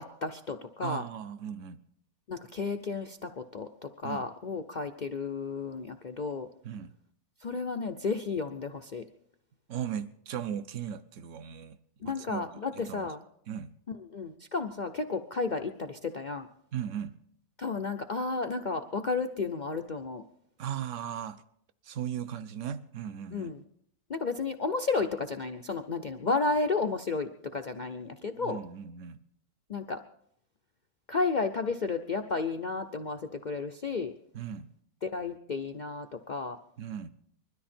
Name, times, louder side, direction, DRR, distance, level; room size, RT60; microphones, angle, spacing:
voice 1, 0.0-1.0 2.3-6.5 7.4-9.0 12.0-13.2 13.9-16.5 17.6-20.2 23.3-23.6 24.1-28.6 29.7-30.0 31.1-34.1 35.0-36.6, left 4 dB, 60° left, 0.4 m, -32 dB
voice 2, 0.8-1.8 4.0-4.2 6.6-6.9 9.7-11.8 12.0-13.1 13.5-13.7 16.7-17.2 20.6-21.4 21.8-23.6 28.4-29.2 34.3-34.7 36.8-37.1, right 9 dB, 60° right, 1.0 m, -37 dB
21.5 x 13.0 x 4.3 m
omnidirectional pair, 1.6 m